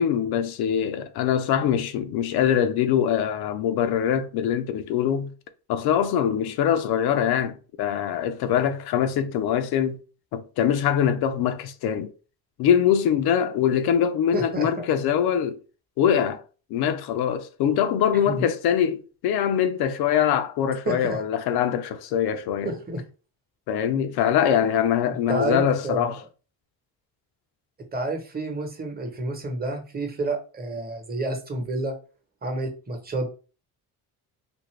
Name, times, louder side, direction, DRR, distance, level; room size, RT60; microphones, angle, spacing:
voice 1, 0.0-5.3 5.7-10.0 10.3-12.1 12.6-15.6 16.0-16.4 16.7-22.7 23.7-26.2, left 9 dB, 75° left, 0.5 m, -23 dB
voice 2, 14.3-14.7 18.3-18.5 20.9-21.2 22.6-23.0 25.3-26.1 27.9-31.9 32.4-33.3, right 2 dB, 25° right, 1.0 m, -29 dB
2.7 x 2.5 x 3.2 m
supercardioid pair, 80°, 39 cm